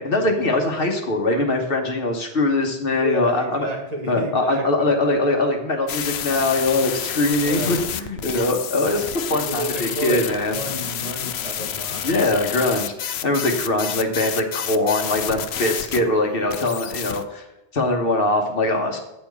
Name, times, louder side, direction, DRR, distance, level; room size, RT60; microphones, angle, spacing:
voice 1, 0.0-3.7 4.1-10.6 12.0-17.4 17.7-19.0, left 2 dB, 60° left, 3 dB, 1.4 m, -22 dB
voice 2, 2.9-4.9 7.4-7.9 9.3-12.3, right 1 dB, 40° right, -1 dB, 2.1 m, -31 dB
sound 1, 5.9-16.0 16.5-17.2, left 10 dB, 80° left, 0.8 m, -29 dB
9.1 x 4.4 x 6.9 m, 0.96 s
omnidirectional pair, 1.1 m